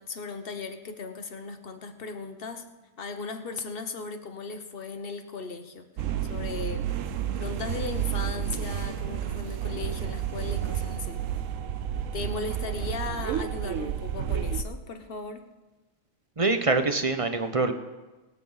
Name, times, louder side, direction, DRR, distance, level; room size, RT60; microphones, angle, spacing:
voice 1, 0.0-2.7 3.0-5.9 6.3-6.9 7.4-11.2 12.1-15.4, left 4 dB, 45° left, 7 dB, 1.3 m, -37 dB
sound 1, 6.0-14.6, right 9 dB, 75° right, 1.1 m, -31 dB
voice 2, 16.4-17.7, right 3 dB, 30° right, 8 dB, 0.8 m, -24 dB
23.0 x 9.4 x 4.0 m, 1.2 s
omnidirectional pair, 1.4 m